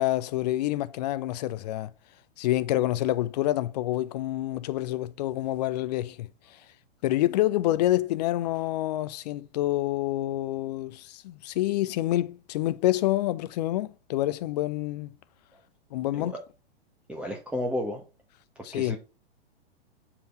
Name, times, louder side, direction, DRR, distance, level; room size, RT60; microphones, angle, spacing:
voice 1, 0.0-1.9 2.4-6.3 7.0-15.1 15.9-16.3 18.6-19.0, left 15 dB, 40° left, 0.7 m, -27 dB
voice 2, 17.1-18.0 18.7-19.0, left 1 dB, 5° right, 1.0 m, -32 dB
7.9 x 4.2 x 4.4 m
figure-of-eight pair, 105°, 32 cm